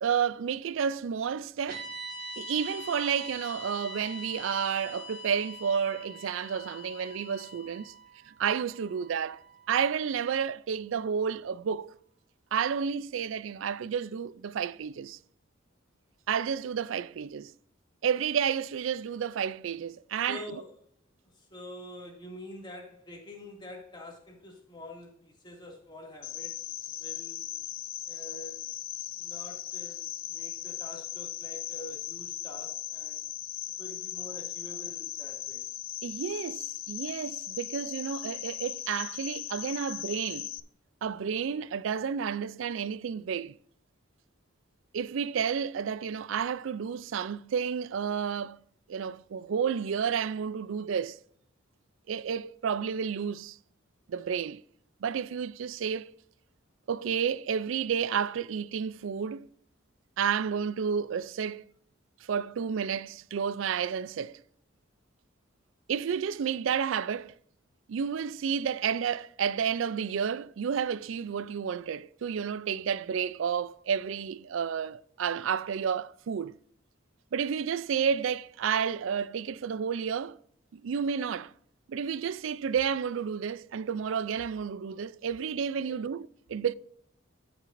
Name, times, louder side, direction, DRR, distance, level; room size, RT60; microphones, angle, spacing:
voice 1, 0.0-1.9 2.4-7.9 8.3-9.4 9.7-11.9 12.5-15.2 16.3-17.5 18.0-20.4 36.0-40.5 41.0-43.6 44.9-48.6 48.9-51.2 52.1-53.6 54.1-54.6 55.0-56.1 56.9-59.5 60.2-61.6 62.2-64.4 65.9-67.3 67.9-76.6 77.3-80.4 80.7-81.5 81.9-86.7, right 7 dB, 70° right, 0.4 m, -31 dB
sound 1, 1.7-10.0, equal, 50° right, 3.4 m, -44 dB
voice 2, 20.3-20.7 21.3-27.5 28.1-28.7 29.2-33.3 33.8-35.6 85.8-86.0, left 1 dB, 25° left, 2.3 m, -46 dB
Cricket, 26.2-40.6, left 14 dB, 75° left, 0.5 m, -38 dB
14.0 x 6.1 x 2.6 m
head